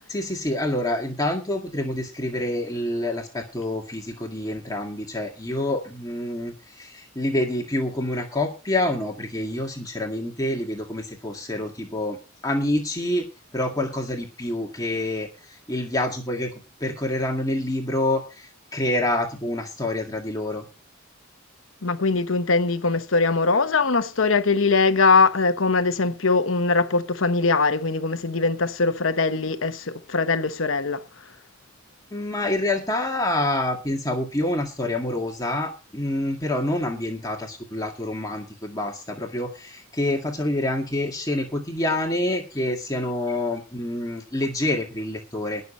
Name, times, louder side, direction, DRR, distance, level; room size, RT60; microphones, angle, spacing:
voice 1, 0.1-12.2 12.4-13.2 13.5-15.3 15.7-16.5 16.8-20.6 32.1-45.6, left 1 dB, 20° left, 2.0 m, -27 dB
voice 2, 21.8-31.0, left 4 dB, 75° left, 1.1 m, -21 dB
20.5 x 7.0 x 4.3 m
head